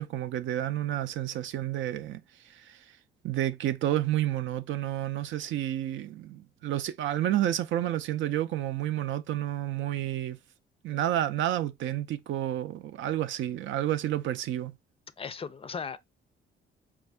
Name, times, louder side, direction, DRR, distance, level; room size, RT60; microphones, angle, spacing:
voice 1, 0.0-2.8 3.2-10.4 10.8-14.7, right 12 dB, 75° right, 0.5 m, -30 dB
voice 2, 15.2-16.0, left 6 dB, 30° left, 0.4 m, -36 dB
4.4 x 2.5 x 3.3 m
cardioid pair, 90°, 20 cm